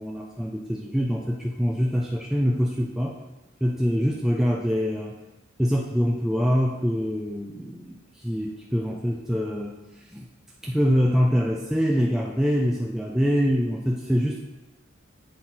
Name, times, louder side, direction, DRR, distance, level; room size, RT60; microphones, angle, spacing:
voice 1, 0.0-3.2 3.6-5.2 5.6-10.3 10.6-14.4, equal, ahead, -2 dB, 0.3 m, -24 dB
7.8 x 4.1 x 4.3 m, 1.1 s
head